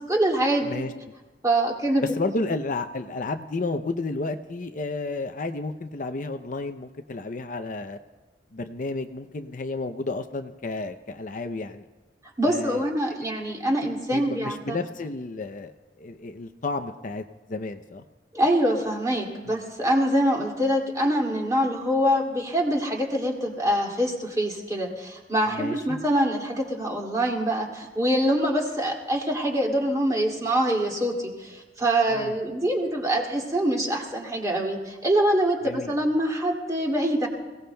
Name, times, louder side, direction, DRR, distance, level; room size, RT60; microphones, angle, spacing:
voice 1, 0.1-0.7 1.4-2.1 12.4-14.8 18.3-35.6 35.9-37.3, right 1 dB, 20° right, -1 dB, 2.4 m, -24 dB
voice 2, 2.0-8.0 8.5-11.8 12.5-12.8 13.8-18.0 19.5-19.6 25.5-26.0 32.1-32.4 35.6-35.9, left 3 dB, 50° left, 7 dB, 0.6 m, -32 dB
27.0 x 17.5 x 2.3 m, 1.3 s
head